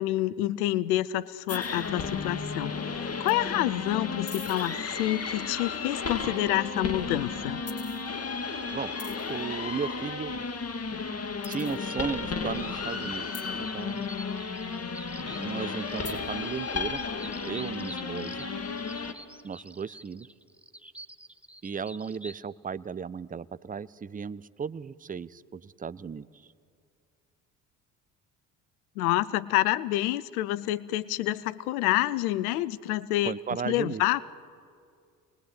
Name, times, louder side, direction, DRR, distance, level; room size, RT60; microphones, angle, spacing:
voice 1, 0.0-7.6 29.0-33.4 33.6-34.3, left 15 dB, 80° left, 19 dB, 0.7 m, -28 dB
sound 1, 1.5-19.1, left 4 dB, 35° left, 2.1 m, -33 dB
voice 2, 9.3-10.4 11.5-14.1 15.4-17.0 17.4-18.5 19.4-20.3 21.6-26.3 33.2-34.0, right 6 dB, 20° right, 17 dB, 0.7 m, -35 dB
sound 2, 11.4-22.3, right 1 dB, 5° right, 1.0 m, -48 dB
28.0 x 20.5 x 8.2 m, 2.3 s
hypercardioid pair, 55°, 44 cm